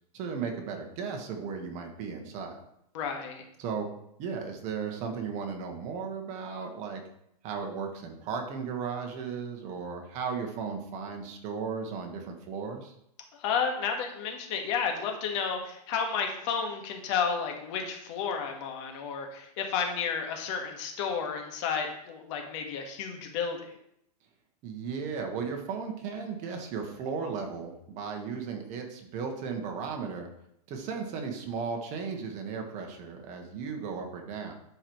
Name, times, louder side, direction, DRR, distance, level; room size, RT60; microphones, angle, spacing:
voice 1, 0.1-2.6 3.6-3.9 4.2-7.0 7.4-12.9 24.6-30.3 30.7-34.5, right 5 dB, 40° right, 3 dB, 1.5 m, -35 dB
voice 2, 2.9-3.4 13.3-23.7, left 6 dB, 50° left, 3 dB, 1.6 m, -32 dB
11.5 x 4.7 x 3.1 m, 0.76 s
hypercardioid pair, 130°, 20 cm